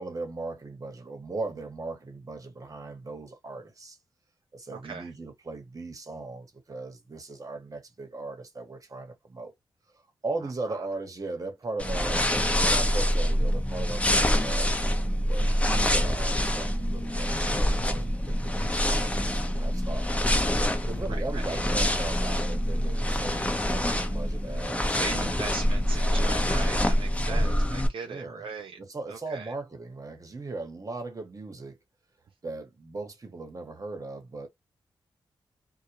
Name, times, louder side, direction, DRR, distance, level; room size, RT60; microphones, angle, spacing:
voice 1, 0.0-4.0 4.5-9.5 9.9-14.7 15.2-20.3 20.9-25.0 27.2-27.7 28.0-28.4 28.8-31.8 32.4-34.5, right 3 dB, 40° right, 1.1 m, -38 dB
voice 2, 4.7-5.1 10.7-10.9 15.4-15.9 21.1-21.5 24.8-28.8 29.1-29.5, right 5 dB, 70° right, 0.4 m, -40 dB
sound 1, 11.8-27.9, equal, 15° left, 0.7 m, -26 dB
2.2 x 2.2 x 2.9 m
cardioid pair, 60°, 9 cm